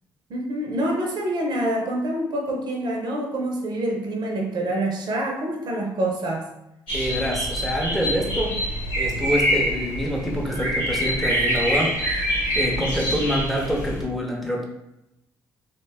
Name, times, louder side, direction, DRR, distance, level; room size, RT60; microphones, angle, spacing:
voice 1, 0.3-6.5, right 1 dB, 55° right, 0 dB, 0.6 m, -26 dB
sound 1, 6.9-14.0, equal, 80° left, 1.2 m, -25 dB
voice 2, 6.9-8.6 9.0-12.0 12.5-14.7, equal, ahead, -1 dB, 0.7 m, -26 dB
2.4 x 2.2 x 3.4 m, 0.89 s
supercardioid pair, 60°, 9 cm